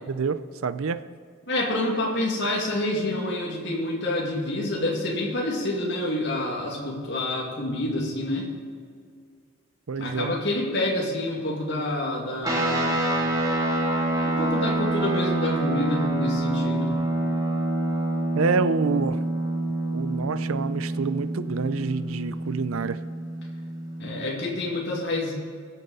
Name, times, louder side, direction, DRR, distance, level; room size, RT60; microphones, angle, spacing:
voice 1, 0.1-1.0 9.9-10.3 18.3-19.2 19.9-23.0, right 5 dB, 75° right, 13 dB, 0.5 m, -27 dB
voice 2, 1.5-8.5 10.0-13.2 14.2-16.9 21.7-21.8 24.0-25.3, left 1 dB, 55° left, -2 dB, 2.2 m, -28 dB
sound 1, 12.4-24.2, right 1 dB, 15° right, 1.6 m, -26 dB
21.0 x 7.2 x 4.1 m, 2.1 s
head